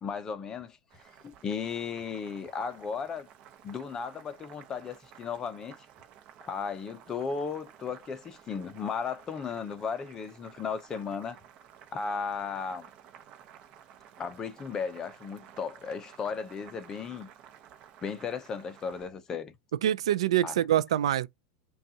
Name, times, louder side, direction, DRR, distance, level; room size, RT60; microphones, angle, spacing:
voice 1, 0.0-3.3 3.6-5.8 6.4-11.4 11.9-12.9 14.2-17.3 18.0-19.5 20.4-20.5, left 6 dB, 20° left, 0.6 m, -35 dB
Boiling, 0.9-19.1, right 9 dB, 35° right, 0.8 m, -54 dB
voice 2, 19.8-21.3, right 12 dB, 85° right, 0.4 m, -25 dB
5.3 x 2.3 x 2.7 m
supercardioid pair, 150°, 3 cm